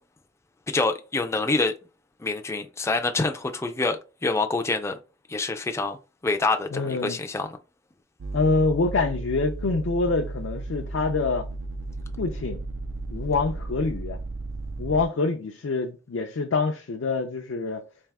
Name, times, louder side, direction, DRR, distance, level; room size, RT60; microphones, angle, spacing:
voice 1, 0.7-1.7 2.2-4.9 5.3-6.0 6.2-7.5, left 3 dB, 15° left, 0.3 m, -26 dB
voice 2, 6.7-7.2 8.3-11.5 12.2-12.6 13.1-14.2 14.8-17.8, left 3 dB, 80° left, 0.5 m, -26 dB
sound 1, 8.2-15.1, right 2 dB, 70° right, 0.5 m, -34 dB
3.4 x 2.7 x 3.4 m
head